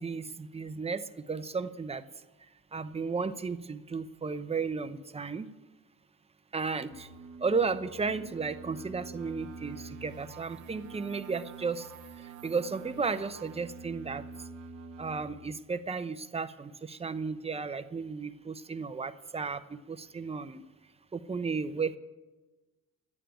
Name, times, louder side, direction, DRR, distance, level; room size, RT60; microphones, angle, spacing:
voice 1, 0.0-2.0 2.7-5.5 6.5-7.1 7.4-11.9 12.2-14.2 15.0-20.6 21.1-22.0, right 4 dB, 20° right, 11 dB, 0.8 m, -34 dB
sound 1, 6.8-15.2, right 4 dB, 85° right, 1.3 m, -46 dB
12.0 x 9.2 x 8.9 m, 1.2 s
cardioid pair, 90°, 30 cm